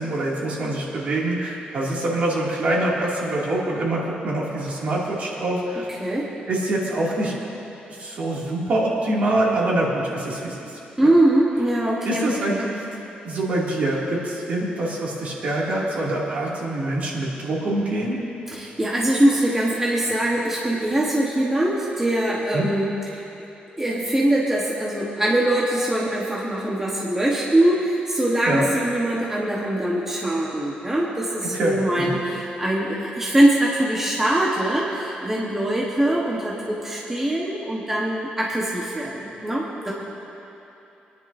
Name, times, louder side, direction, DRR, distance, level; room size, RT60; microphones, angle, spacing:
voice 1, 0.0-5.9 6.5-7.3 7.9-10.6 11.0-11.1 12.0-12.7 13.2-18.2 22.5-22.7 28.5-28.7 31.5-32.2, right 1 dB, 50° right, -5 dB, 2.6 m, -25 dB
voice 2, 11.0-12.6 18.5-23.2 23.8-39.9, right 1 dB, 15° right, -5 dB, 1.3 m, -22 dB
25.5 x 10.5 x 2.7 m, 3.0 s
cardioid pair, 145°, 3 cm